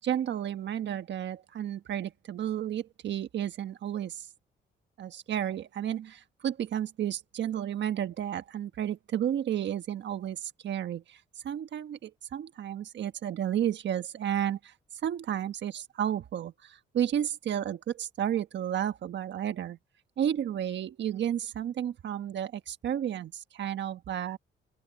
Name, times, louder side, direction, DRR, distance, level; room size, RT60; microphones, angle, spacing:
voice 1, 0.0-4.3 5.0-14.7 15.0-19.8 20.2-24.4, right 10 dB, 65° right, 1.3 m, -32 dB
open air
cardioid pair, 90°, 20 cm